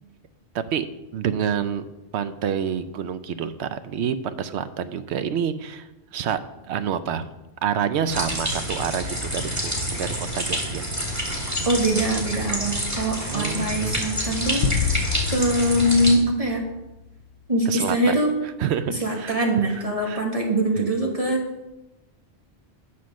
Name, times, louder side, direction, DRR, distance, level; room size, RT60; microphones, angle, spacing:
voice 1, 0.5-0.9 1.1-1.9 2.1-6.4 6.7-7.3 7.6-10.8 13.3-13.7 17.7-18.2 18.4-19.4 19.7-20.2 20.8-20.9, right 8 dB, 85° right, 12 dB, 0.9 m, -28 dB
sound 1, 8.1-16.1, equal, 15° right, 1.8 m, -28 dB
voice 2, 11.6-16.6 17.5-18.3 19.0-21.5, right 1 dB, 35° right, 0 dB, 1.3 m, -23 dB
sound 2, 14.6-17.3, left 7 dB, 80° left, 0.8 m, -29 dB
9.4 x 4.3 x 6.2 m, 1.0 s
omnidirectional pair, 1.1 m